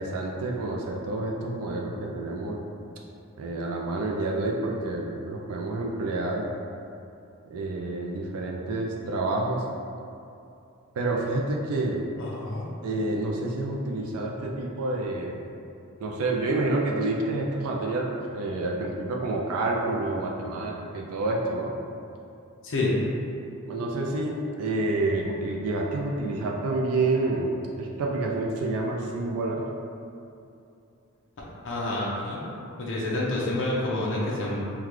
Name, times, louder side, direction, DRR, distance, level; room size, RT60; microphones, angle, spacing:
voice 1, 0.0-2.6 3.4-6.5 7.4-9.6 11.0-12.0 12.8-15.4 16.0-21.7 23.7-29.7, right 2 dB, 80° right, -1 dB, 0.4 m, -28 dB
voice 2, 12.2-12.6 22.6-23.0 31.6-32.4 32.8-34.6, left 2 dB, 60° left, -5 dB, 0.6 m, -28 dB
3.7 x 2.2 x 3.0 m, 2.7 s
head